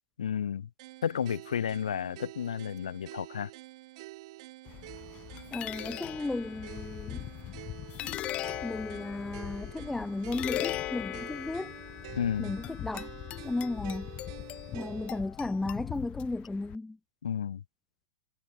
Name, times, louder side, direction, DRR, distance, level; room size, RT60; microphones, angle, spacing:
voice 1, 0.2-0.7 1.0-3.5 12.2-12.5 17.2-17.6, left 8 dB, 80° left, 0.5 m, -32 dB
sound 1, 0.8-15.2, right 20 dB, 55° right, 3.7 m, -48 dB
sound 2, 4.7-16.8, left 14 dB, 35° left, 1.4 m, -39 dB
voice 2, 5.5-7.3 8.6-11.8 12.4-13.1 13.4-14.1 14.7-17.0, left 2 dB, 5° left, 0.6 m, -34 dB
hypercardioid pair, 105°, 4 cm